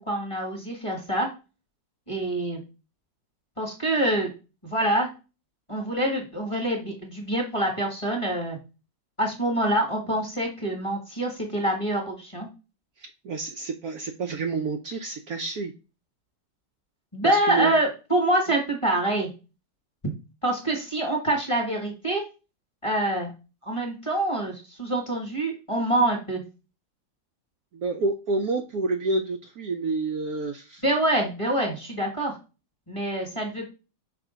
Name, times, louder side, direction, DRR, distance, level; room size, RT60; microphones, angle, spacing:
voice 1, 0.1-1.3 2.1-2.6 3.6-4.3 4.6-5.1 5.7-8.6 9.2-12.5 17.1-19.3 20.4-22.2 22.8-23.3 23.6-26.4 30.8-32.4 32.9-33.7, right 1 dB, 20° left, 0 dB, 1.4 m, -26 dB
voice 2, 13.2-15.7 17.2-17.7 27.7-30.8, right 3 dB, 65° right, 4 dB, 1.0 m, -28 dB
5.9 x 3.4 x 5.0 m, 0.30 s
omnidirectional pair, 2.0 m